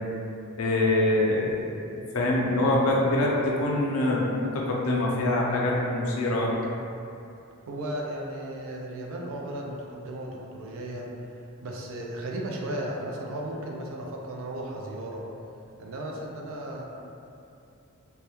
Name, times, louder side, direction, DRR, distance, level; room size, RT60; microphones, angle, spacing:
voice 1, 0.6-6.5, left 1 dB, 70° left, -3 dB, 0.4 m, -25 dB
voice 2, 7.6-11.1 11.6-15.2 15.8-16.8, right 1 dB, 65° right, -1 dB, 0.4 m, -35 dB
2.2 x 2.0 x 2.9 m, 2.7 s
head